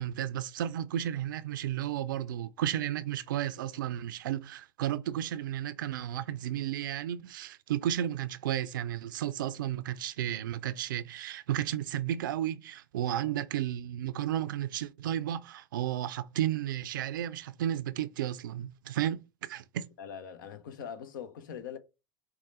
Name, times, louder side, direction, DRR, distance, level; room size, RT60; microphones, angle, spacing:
voice 1, 0.0-19.9, right 11 dB, 80° right, 0.4 m, -33 dB
voice 2, 20.0-21.8, left 8 dB, 80° left, 0.6 m, -42 dB
4.7 x 2.1 x 4.1 m
hypercardioid pair, 85°, 11 cm